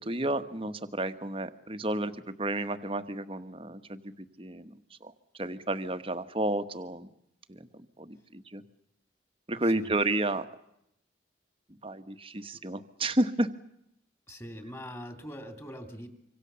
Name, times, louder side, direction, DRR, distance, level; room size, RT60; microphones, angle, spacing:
voice 1, 0.0-4.1 4.4-7.1 7.5-8.6 9.5-10.5 11.8-13.5, right 1 dB, 30° right, 10 dB, 1.4 m, -32 dB
voice 2, 14.3-16.1, equal, 15° left, 7 dB, 3.0 m, -43 dB
26.0 x 25.5 x 7.0 m, 0.79 s
head